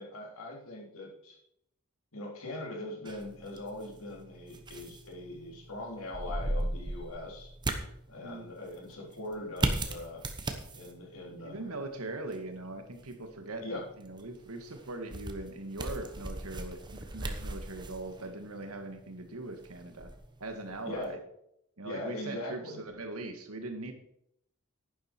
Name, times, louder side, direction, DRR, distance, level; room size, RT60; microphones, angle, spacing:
voice 1, 0.0-1.4 2.1-7.5 8.1-10.2 10.7-11.8 13.6-13.8 20.8-21.2 21.8-22.8, left 1 dB, 75° left, -1 dB, 3.4 m, -41 dB
sound 1, 3.0-21.1, right 1 dB, 20° right, 1.0 m, -39 dB
voice 2, 11.4-20.1 20.4-21.2 21.8-23.9, right 2 dB, 90° right, 6 dB, 1.8 m, -41 dB
10.5 x 10.5 x 4.5 m, 0.75 s
head